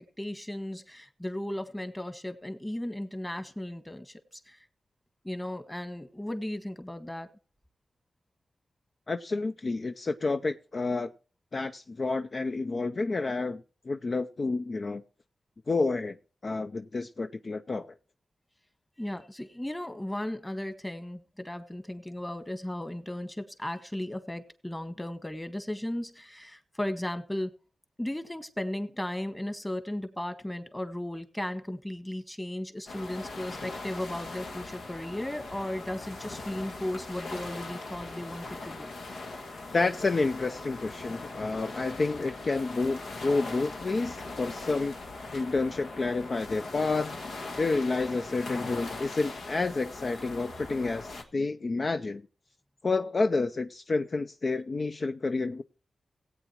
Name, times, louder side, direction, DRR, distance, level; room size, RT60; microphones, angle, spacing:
voice 1, 0.2-4.1 4.5-4.6 5.2-7.3 19.0-27.5 28.0-38.9, left 1 dB, 15° left, 1.5 m, -36 dB
voice 2, 9.1-11.1 11.5-15.0 15.7-16.2 16.4-17.9 39.7-44.9 45.3-47.1 47.6-52.3 52.8-55.6, left 3 dB, 55° left, 0.5 m, -29 dB
sound 1, 32.9-51.2, left 3 dB, 90° left, 1.5 m, -40 dB
17.5 x 8.3 x 3.0 m
cardioid pair, 50°, 0 cm